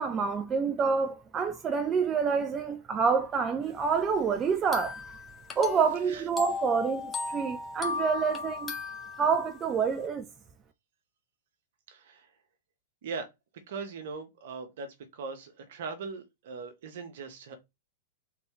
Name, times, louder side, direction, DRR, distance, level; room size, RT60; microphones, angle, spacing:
voice 1, 0.0-5.2 5.6-8.7 9.2-10.2, right 5 dB, 25° right, 0.5 m, -27 dB
sound 1, 4.7-9.7, left 4 dB, 20° left, 1.1 m, -36 dB
voice 2, 11.9-12.3 13.0-13.3 13.7-17.6, right 4 dB, 65° right, 1.3 m, -40 dB
3.8 x 3.3 x 3.2 m
hypercardioid pair, 105°, 0 cm